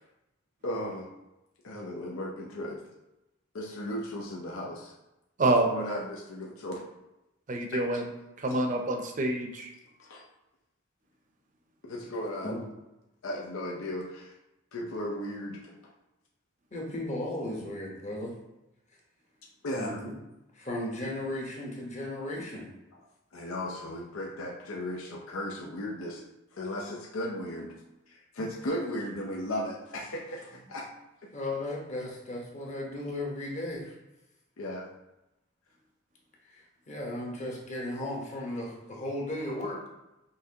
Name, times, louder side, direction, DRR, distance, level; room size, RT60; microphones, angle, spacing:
voice 1, 0.6-1.1 1.6-2.8 3.5-4.9 5.4-6.8 10.0-10.2 11.8-12.5 13.2-14.3 14.7-15.6 19.6-20.0 23.3-26.2 26.5-27.7 28.1-30.9 34.6-34.9, left 1 dB, 85° left, -2 dB, 0.6 m, -36 dB
voice 2, 7.5-8.1 8.4-9.7, right 2 dB, 40° right, 4 dB, 0.5 m, -27 dB
voice 3, 16.7-18.4 19.7-20.1 20.5-22.7 31.3-33.9 36.4-39.9, left 1 dB, 35° left, -2 dB, 1.0 m, -35 dB
5.7 x 3.2 x 2.8 m, 0.94 s
head